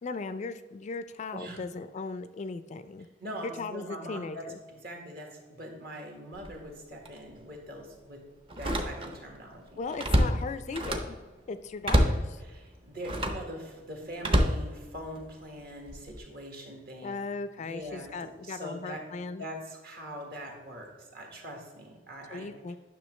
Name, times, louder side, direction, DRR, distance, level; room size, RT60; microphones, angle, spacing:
voice 1, 0.0-3.1 3.4-4.6 9.8-11.2 11.5-12.4 17.0-19.5 22.3-22.8, left 4 dB, 35° left, 11 dB, 0.3 m, -37 dB
voice 2, 1.3-1.6 3.2-8.2 8.6-9.8 12.4-17.2 17.6-22.5, equal, 55° right, 1 dB, 1.6 m, -42 dB
Slam, 6.3-6.6 7.1-7.2 8.5-9.3 9.6-11.2 11.8-12.3 13.0-13.5 14.2-15.3 15.9-16.2, equal, 30° right, 0.7 m, -27 dB
9.9 x 6.0 x 3.2 m, 1.3 s
head